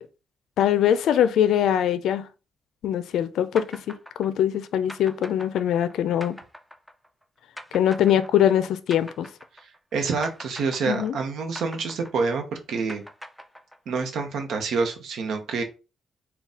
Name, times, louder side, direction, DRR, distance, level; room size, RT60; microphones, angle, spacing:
voice 1, 0.6-2.3 2.8-6.4 7.7-9.3 10.9-11.2, left 10 dB, 75° left, 0.4 m, -22 dB
sound 1, 3.6-9.9 10.2-14.1, equal, ahead, 0.5 m, -43 dB
voice 2, 9.9-13.0 13.9-15.6, right 4 dB, 70° right, 0.8 m, -27 dB
4.0 x 2.3 x 3.6 m
cardioid pair, 125°, 0 cm